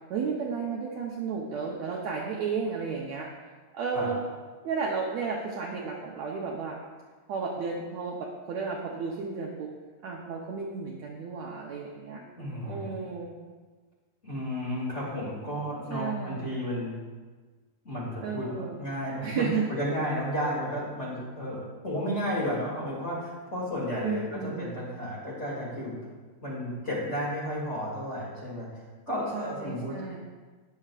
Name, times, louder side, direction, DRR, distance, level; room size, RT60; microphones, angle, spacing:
voice 1, 0.1-3.3 3.7-4.2 4.6-6.8 7.3-9.7 10.0-12.2 12.7-13.5 15.9-16.5 18.2-18.8 19.2-19.7 24.0-24.8 29.3-30.2, right 5 dB, 70° right, -1 dB, 1.7 m, -33 dB
voice 2, 12.1-12.9 14.2-17.0 17.8-19.4 19.7-26.0 26.4-28.7 29.1-30.0, equal, 25° left, -6 dB, 2.2 m, -33 dB
20.0 x 7.0 x 2.4 m, 1.4 s
omnidirectional pair, 4.0 m